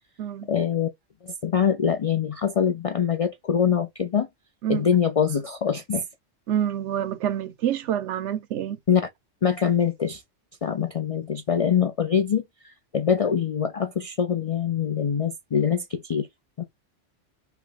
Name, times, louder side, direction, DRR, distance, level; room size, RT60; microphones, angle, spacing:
voice 1, 0.5-0.9 1.2-4.3 4.7-6.0 8.9-9.0 9.4-10.2 10.6-16.3 16.6-16.7, left 7 dB, 65° left, 0.3 m, -24 dB
voice 2, 6.5-8.8, right 10 dB, 75° right, 0.9 m, -27 dB
5.7 x 2.2 x 3.9 m
omnidirectional pair, 1.3 m